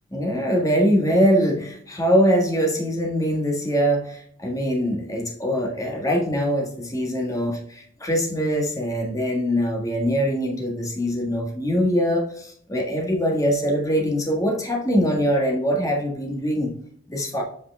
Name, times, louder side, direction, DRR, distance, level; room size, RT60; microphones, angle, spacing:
voice 1, 0.1-16.7 17.1-17.4, equal, 15° left, 0 dB, 1.5 m, -23 dB
7.9 x 4.9 x 3.4 m, 0.62 s
head